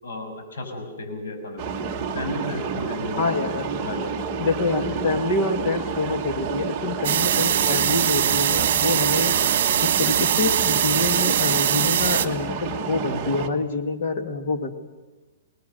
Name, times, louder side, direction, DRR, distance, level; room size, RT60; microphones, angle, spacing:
voice 1, 0.0-3.5 3.8-4.3, left 2 dB, 90° left, 5 dB, 6.5 m, -34 dB
sound 1, 1.6-13.5, right 6 dB, 15° right, 1.3 m, -30 dB
voice 2, 3.2-3.8 4.4-9.4 9.8-14.7, left 3 dB, 40° left, 6 dB, 2.1 m, -26 dB
sound 2, 7.0-12.3, right 10 dB, 50° right, 1.5 m, -22 dB
27.5 x 20.0 x 6.8 m, 1.2 s
hypercardioid pair, 170°, 0 cm